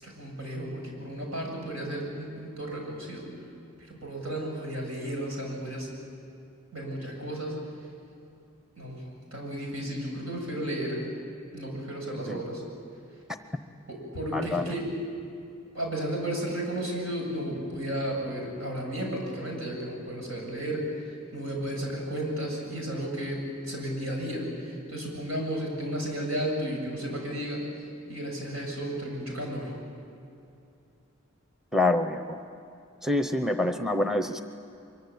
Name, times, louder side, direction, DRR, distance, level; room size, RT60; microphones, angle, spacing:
voice 1, 0.0-3.2 3.9-5.9 6.7-7.5 8.8-9.0 9.3-11.0 11.5-12.6 13.9-14.9 15.7-20.8 21.3-27.6 28.1-29.7, right 1 dB, 85° right, 0 dB, 7.5 m, -33 dB
voice 2, 14.3-14.7 31.7-32.4 33.0-34.4, left 2 dB, ahead, 7 dB, 0.8 m, -26 dB
24.0 x 23.5 x 8.6 m, 2.7 s
head